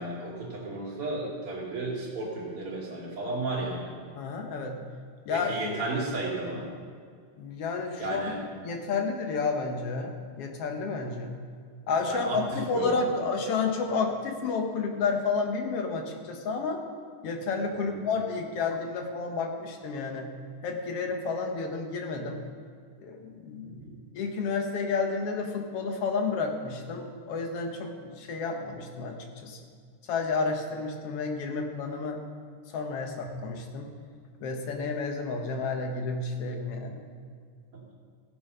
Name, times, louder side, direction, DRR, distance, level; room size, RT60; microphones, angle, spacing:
voice 1, 0.0-3.9 5.3-6.7 8.0-8.4 12.1-13.0 17.8-18.0 23.6-23.9 37.7-37.8, right 2 dB, 45° right, -4 dB, 3.4 m, -33 dB
voice 2, 4.2-4.8 5.3-5.5 7.4-8.2 8.6-11.4 11.9-16.8 17.2-20.3 20.6-22.4 23.0-23.8 24.2-29.6 30.1-32.2 32.7-33.9 34.4-37.0, left 4 dB, 60° left, 3 dB, 1.7 m, -31 dB
15.5 x 8.6 x 5.6 m, 2.1 s
omnidirectional pair, 3.8 m